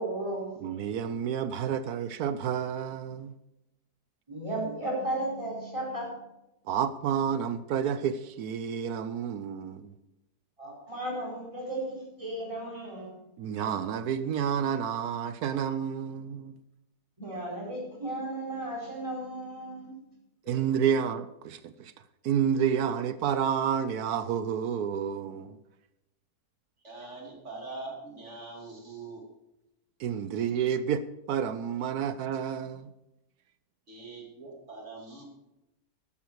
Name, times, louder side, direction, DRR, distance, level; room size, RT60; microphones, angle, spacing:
voice 1, 0.0-0.5 4.3-6.2 10.6-13.1 17.2-19.9 20.4-20.6, right 1 dB, 20° right, 5.1 m, -34 dB
voice 2, 0.6-3.3 6.7-9.9 13.4-16.6 20.5-21.9 22.2-25.6 30.0-31.0 31.3-32.9, right 8 dB, 70° right, 1.2 m, -30 dB
voice 3, 26.8-29.2 33.9-35.2, right 3 dB, 45° right, 3.3 m, -43 dB
13.0 x 11.5 x 4.7 m
omnidirectional pair, 1.7 m